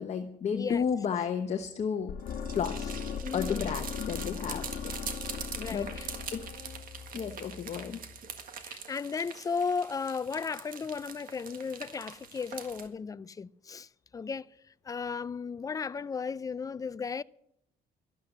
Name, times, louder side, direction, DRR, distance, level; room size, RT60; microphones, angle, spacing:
voice 1, 0.0-2.2 2.5-2.8 3.3-4.9 5.7-6.0 6.3-6.5 7.1-8.0, left 7 dB, 40° left, 1.0 m, -32 dB
voice 2, 0.5-0.9 3.2-3.7 5.5-6.1 8.6-14.5 14.8-17.2, left 5 dB, 20° left, 0.4 m, -35 dB
sound 1, 2.1-8.1, left 7 dB, 65° left, 1.4 m, -39 dB
sound 2, 2.2-12.9, right 7 dB, 55° right, 1.7 m, -43 dB
12.5 x 12.0 x 6.6 m
cardioid pair, 110°, 17 cm